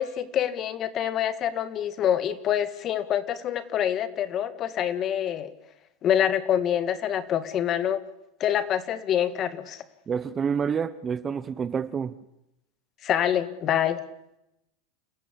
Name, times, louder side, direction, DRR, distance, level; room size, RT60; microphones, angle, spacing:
voice 1, 0.0-5.5 6.0-8.0 8.4-9.8 13.0-14.0, left 10 dB, 30° left, 13 dB, 1.8 m, -26 dB
voice 2, 10.1-12.1, right 6 dB, 20° right, 15 dB, 0.9 m, -28 dB
28.0 x 15.5 x 8.6 m, 0.87 s
supercardioid pair, 140°, 0 cm